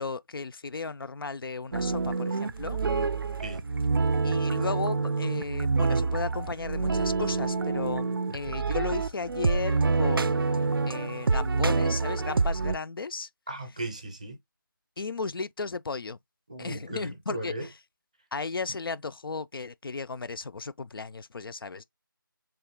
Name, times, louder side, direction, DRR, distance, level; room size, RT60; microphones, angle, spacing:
voice 1, 0.0-2.8 4.2-13.3 15.0-16.2 16.6-17.7 18.3-21.8, left 4 dB, 80° left, 0.4 m, -35 dB
sound 1, 1.7-12.8, right 4 dB, 80° right, 0.4 m, -27 dB
voice 2, 13.5-14.4 16.5-17.7, right 2 dB, 20° right, 0.6 m, -37 dB
3.5 x 2.7 x 3.5 m
figure-of-eight pair, 175°, 12 cm